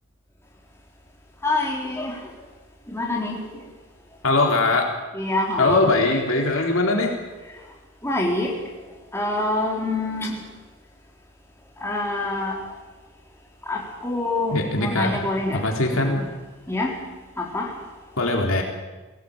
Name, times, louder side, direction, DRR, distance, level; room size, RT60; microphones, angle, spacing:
voice 1, 1.4-2.2 2.9-3.4 5.1-5.9 8.0-8.5 9.1-10.3 11.8-12.6 13.7-15.6 15.9-16.2 16.7-16.9 17.4-17.7, left 2 dB, 10° left, -2 dB, 4.1 m, -26 dB
voice 2, 4.2-4.9 5.6-7.1 14.5-15.2 15.5-16.2 18.2-18.6, left 2 dB, 65° left, 1 dB, 3.8 m, -21 dB
22.0 x 17.0 x 8.8 m, 1.2 s
head